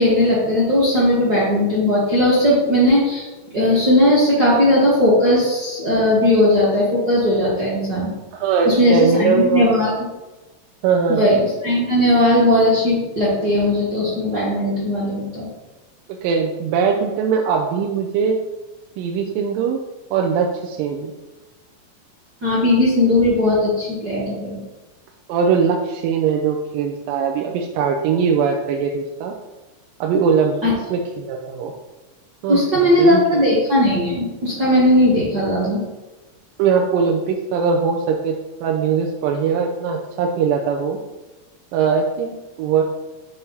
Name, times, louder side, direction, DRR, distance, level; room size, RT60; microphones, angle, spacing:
voice 1, 0.0-3.3 3.5-8.1 8.6-9.9 11.1-11.4 11.6-15.5 22.4-24.6 30.6-30.7 32.5-35.8, left 1 dB, 60° right, -7 dB, 1.0 m, -17 dB
voice 2, 8.3-10.0 10.8-11.3 16.2-18.4 19.0-19.8 20.1-21.1 25.3-29.3 30.0-30.6 30.9-31.7 32.4-33.2 36.6-38.3 38.6-41.0 41.7-42.8, right 6 dB, 85° right, 1 dB, 2.2 m, -20 dB
6.6 x 3.4 x 5.4 m, 1.1 s
omnidirectional pair, 3.8 m